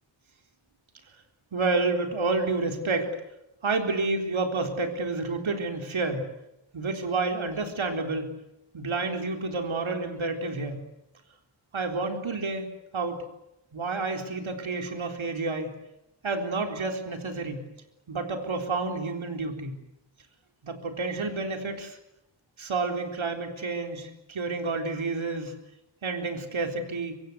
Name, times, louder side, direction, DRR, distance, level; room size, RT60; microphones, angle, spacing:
voice 1, 1.5-3.1 3.6-6.3 6.7-8.3 8.7-10.8 11.7-12.7 12.9-13.2 13.7-15.8 16.2-17.6 18.1-19.8 20.6-22.0 22.6-25.5 26.0-27.2, right 3 dB, 90° right, 5 dB, 4.1 m, -29 dB
25.0 x 24.5 x 8.1 m, 0.87 s
wide cardioid pair, 105°, 46 cm